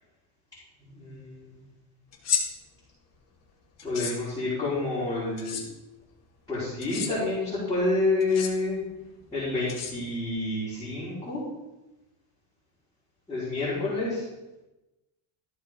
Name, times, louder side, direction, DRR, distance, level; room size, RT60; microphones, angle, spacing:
voice 1, 0.8-1.6 3.8-5.6 6.5-8.8 9.3-11.4 13.3-14.2, left 2 dB, 10° left, -13 dB, 4.6 m, -28 dB
sound 1, 2.1-2.4 3.8-4.1 5.4-5.6 6.8-7.1 8.2-8.5 9.7-10.3, left 8 dB, 30° left, 2.3 m, -30 dB
14.5 x 7.6 x 3.8 m, 1.0 s
cardioid pair, 165°, 48 cm